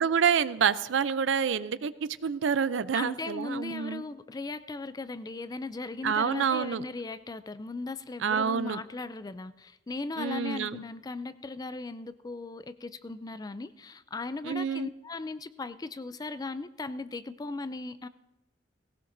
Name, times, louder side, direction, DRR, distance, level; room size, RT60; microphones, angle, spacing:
voice 1, 0.0-4.0 6.0-6.8 8.2-8.8 10.2-10.8 14.4-14.9, right 7 dB, 80° right, 15 dB, 0.5 m, -27 dB
voice 2, 2.9-18.1, left 3 dB, 20° left, 13 dB, 0.4 m, -38 dB
18.0 x 17.5 x 2.6 m, 0.98 s
head